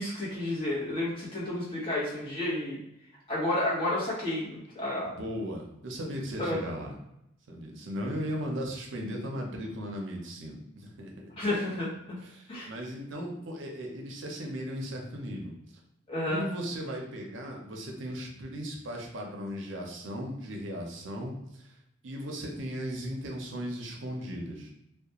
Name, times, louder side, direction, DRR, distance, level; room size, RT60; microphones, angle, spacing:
voice 1, 0.0-2.8 3.3-5.1 6.4-6.6 11.4-12.2 12.5-12.7 16.1-16.5, left 1 dB, 30° left, -7 dB, 1.0 m, -31 dB
voice 2, 5.0-7.0 7.5-11.1 12.2-15.5 16.3-21.7 22.0-24.7, equal, 65° right, 0 dB, 0.5 m, -37 dB
2.4 x 2.1 x 2.9 m, 0.83 s
head